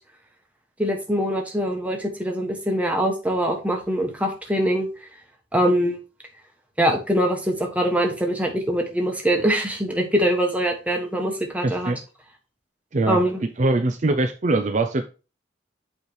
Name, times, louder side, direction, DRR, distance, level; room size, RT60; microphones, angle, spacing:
voice 1, 0.8-4.9 5.5-6.0 6.8-12.0 13.1-13.4, equal, 10° right, 2 dB, 1.3 m, -23 dB
voice 2, 11.6-12.0 12.9-13.2 13.6-15.1, right 2 dB, 40° right, 7 dB, 0.5 m, -22 dB
8.1 x 3.4 x 4.5 m, 0.32 s
head